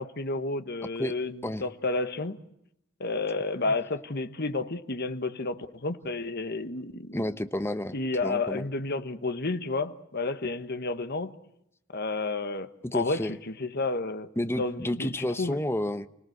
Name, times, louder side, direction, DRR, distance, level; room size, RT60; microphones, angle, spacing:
voice 1, 0.0-2.4 3.0-7.2 7.9-11.3 11.9-14.3 14.6-15.6, left 3 dB, 50° left, 10 dB, 1.3 m, -31 dB
voice 2, 7.1-7.9 8.2-8.7 12.8-13.3 14.4-16.1, left 1 dB, 10° left, 10 dB, 0.9 m, -30 dB
29.0 x 18.0 x 8.0 m, 0.80 s
head